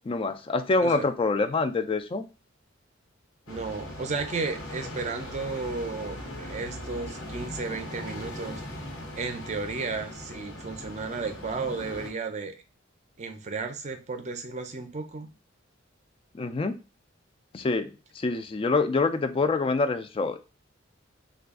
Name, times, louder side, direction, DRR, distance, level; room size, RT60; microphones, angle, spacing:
voice 1, 0.1-2.2 16.4-16.7 17.5-17.9 18.2-20.4, left 3 dB, 25° left, 10 dB, 0.3 m, -26 dB
sound 1, 3.5-12.1, left 1 dB, 85° left, 1.0 m, -39 dB
voice 2, 3.5-8.6 9.2-12.5 13.2-15.3, right 4 dB, 35° right, 6 dB, 0.5 m, -33 dB
3.3 x 2.3 x 3.6 m, 0.31 s
head